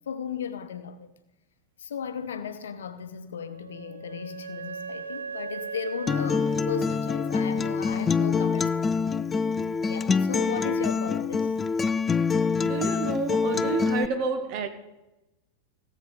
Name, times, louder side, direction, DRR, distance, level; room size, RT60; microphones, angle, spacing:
voice 1, 0.1-1.1 1.8-9.1 9.9-11.5, left 7 dB, 65° left, 0.8 m, -36 dB
Wind instrument woodwind instrument, 3.4-8.0, right 5 dB, 75° right, 0.5 m, -39 dB
Acoustic guitar, 6.1-14.1, left 5 dB, 20° left, 0.3 m, -25 dB
voice 2, 12.6-14.7, right 5 dB, 45° right, 1.2 m, -30 dB
16.5 x 7.3 x 4.9 m
figure-of-eight pair, 90°, 0 cm